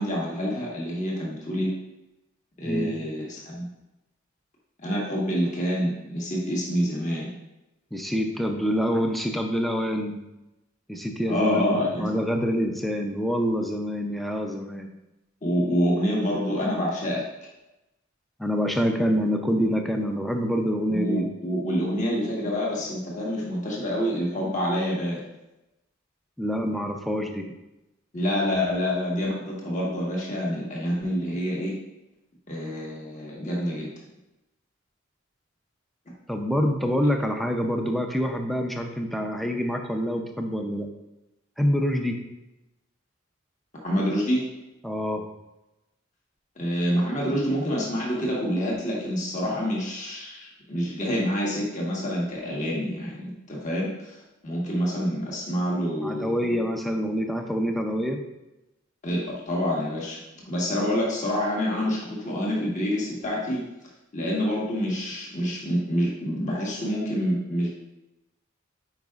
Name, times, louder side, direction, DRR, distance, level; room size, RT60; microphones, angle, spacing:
voice 1, 0.0-1.7 2.6-3.7 4.8-7.3 11.3-12.1 15.4-17.2 20.9-25.2 28.1-31.7 32.5-33.9 43.8-44.5 46.6-56.5 59.0-60.2 60.4-63.6 64.1-67.7, equal, 35° left, -4 dB, 1.3 m, -27 dB
voice 2, 7.9-10.2 10.9-14.9 18.4-21.3 26.4-27.5 36.3-40.9 41.6-42.2 44.8-45.3 56.0-58.2, equal, ahead, 3 dB, 0.5 m, -26 dB
9.1 x 4.7 x 2.4 m, 0.96 s
head